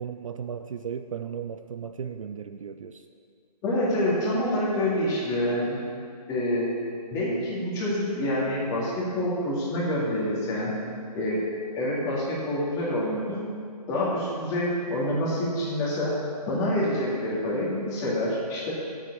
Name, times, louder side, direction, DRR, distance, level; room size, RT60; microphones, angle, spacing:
voice 1, 0.0-3.0, right 7 dB, 50° right, 8 dB, 0.5 m, -35 dB
voice 2, 3.6-5.8 6.3-6.7 7.1-10.7 11.1-11.4 11.8-13.4 13.9-16.1 16.5-18.7, left 1 dB, 15° left, -6 dB, 2.2 m, -27 dB
7.5 x 7.3 x 8.4 m, 2.2 s
hypercardioid pair, 155°, 21 cm